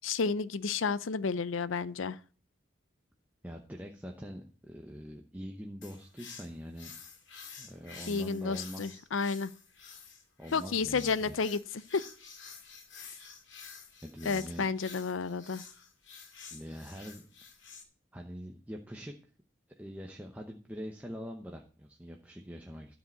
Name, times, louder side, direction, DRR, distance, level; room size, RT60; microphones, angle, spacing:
voice 1, 0.0-2.2 8.1-9.5 10.5-11.6 11.9-12.0 14.2-15.6, left 5 dB, 90° left, 0.6 m, -31 dB
voice 2, 3.4-6.9 7.6-9.1 10.4-11.3 14.0-14.7 16.5-17.3 18.1-19.1 19.8-22.9, equal, 10° right, 0.8 m, -44 dB
sound 1, 5.8-17.8, left 6 dB, 70° left, 2.2 m, -50 dB
12.5 x 5.0 x 7.9 m
head